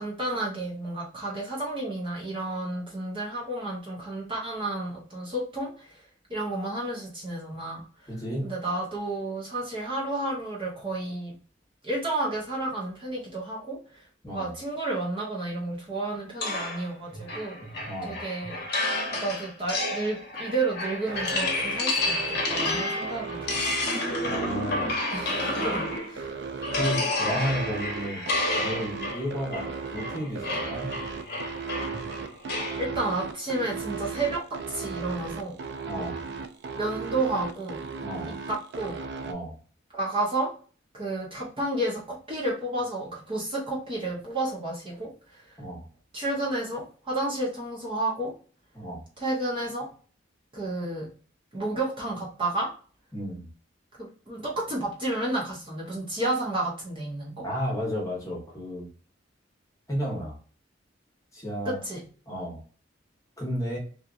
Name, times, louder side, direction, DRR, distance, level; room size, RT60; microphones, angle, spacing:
voice 1, 0.0-5.9 6.3-7.8 8.4-11.3 11.8-13.8 14.3-17.6 18.1-18.6 19.1-23.6 25.1-26.4 32.8-35.6 36.8-37.8 38.2-39.0 39.9-40.5 40.9-45.4 46.1-48.3 49.2-49.9 50.5-51.1 51.5-52.7 54.0-57.5 61.6-62.0, right 2 dB, 25° right, -3 dB, 0.7 m, -31 dB
voice 2, 8.1-8.5 14.2-14.6 17.9-18.2 24.2-25.0 26.8-28.3 28.5-30.9 35.9-36.3 38.0-38.3 39.2-39.6 45.6-45.9 48.7-49.0 53.1-53.5 57.4-58.9 59.9-60.4 61.3-61.8 62.3-62.6 63.4-63.8, equal, 15° left, -3 dB, 0.9 m, -32 dB
sound 1, 16.4-26.2 26.6-32.8, left 2 dB, 55° left, 0.8 m, -30 dB
sound 2, 21.1-39.3, right 5 dB, 60° right, 0.3 m, -36 dB
2.8 x 2.4 x 2.4 m, 0.41 s
head